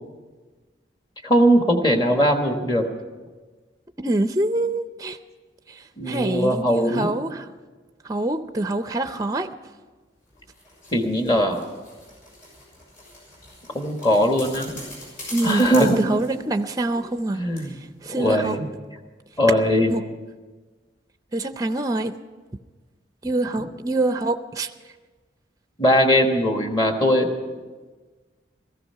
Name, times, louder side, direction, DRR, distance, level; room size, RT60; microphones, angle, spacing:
voice 1, 1.2-2.8 6.0-7.1 10.9-11.6 13.7-14.8 15.4-16.0 17.3-17.7 18.2-18.7 19.4-19.9 25.8-27.3, equal, 25° left, 4 dB, 1.4 m, -20 dB
voice 2, 4.0-5.2 5.7-7.5 8.0-9.5 15.3-17.4 18.0-18.6 19.9-20.0 21.3-22.1 23.2-24.7, right 2 dB, 20° right, 9 dB, 0.5 m, -25 dB
sound 1, 10.3-17.3 17.6-17.7, left 1 dB, 45° left, 6.5 m, -42 dB
15.5 x 14.5 x 5.7 m, 1.4 s
head